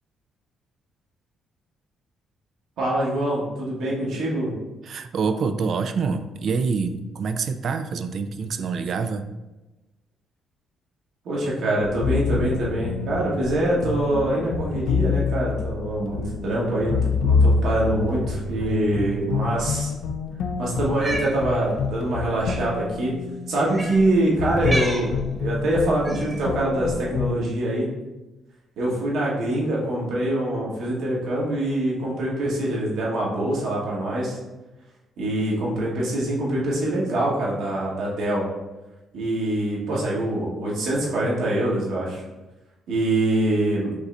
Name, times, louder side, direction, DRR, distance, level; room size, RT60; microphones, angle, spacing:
voice 1, 2.8-4.5 11.2-19.9 20.6-23.1 23.5-25.1 25.4-27.9 28.8-34.4 35.2-38.4 39.1-42.2 42.9-43.9, right 1 dB, 75° right, -5 dB, 1.4 m, -24 dB
voice 2, 4.8-9.3 17.0-17.1, right 5 dB, 60° right, 9 dB, 0.3 m, -26 dB
sound 1, 11.8-27.3, left 4 dB, 75° left, 0.4 m, -27 dB
Cat, 20.9-21.3 22.4-22.6 23.7-24.0 24.6-25.1 26.0-26.4, right 1 dB, 20° right, 0.9 m, -30 dB
5.2 x 3.2 x 2.5 m, 1.1 s
cardioid pair, 90°, 0 cm